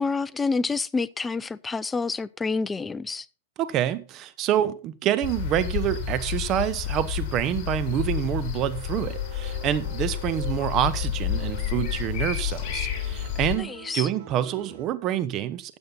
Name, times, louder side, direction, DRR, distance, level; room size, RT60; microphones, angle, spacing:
voice 1, 0.0-3.3 13.6-14.1, left 4 dB, 10° left, 0.5 m, -28 dB
voice 2, 3.6-15.8, right 11 dB, 35° right, 1.0 m, -27 dB
sound 1, 5.2-13.6, left 10 dB, 40° left, 3.5 m, -30 dB
sound 2, 8.6-14.9, right 8 dB, 60° right, 5.8 m, -44 dB
12.5 x 7.7 x 4.0 m
hypercardioid pair, 135°, 0 cm